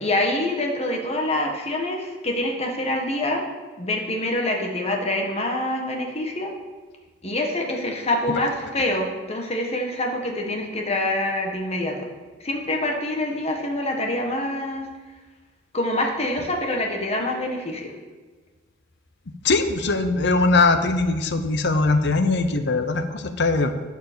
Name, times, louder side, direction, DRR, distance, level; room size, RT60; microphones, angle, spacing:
voice 1, 0.0-3.4 3.8-6.5 7.2-12.1 12.4-14.9 15.7-17.9, left 1 dB, 35° left, 2 dB, 1.6 m, -26 dB
voice 2, 19.4-23.7, left 3 dB, 65° left, 9 dB, 0.8 m, -21 dB
11.5 x 5.1 x 6.8 m, 1.3 s
head